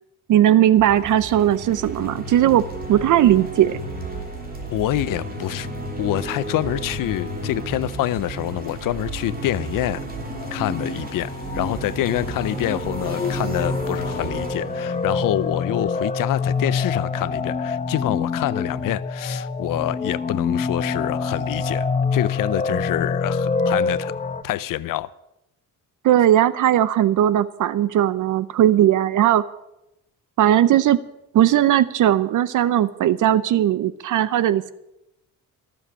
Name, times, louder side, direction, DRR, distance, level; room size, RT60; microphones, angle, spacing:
voice 1, 0.3-3.8 26.0-29.4 30.4-31.0 31.3-34.7, right 11 dB, 65° right, 17 dB, 0.6 m, -18 dB
sound 1, 0.7-16.2, right 2 dB, 25° right, 3.2 m, -33 dB
voice 2, 4.7-5.7 6.0-10.0 10.5-24.1 24.4-25.1, left 14 dB, 75° left, 17 dB, 0.6 m, -26 dB
sound 2, 9.7-24.4, left 4 dB, 20° left, 0.9 m, -26 dB
15.5 x 7.2 x 9.7 m, 0.89 s
cardioid pair, 130°, 33 cm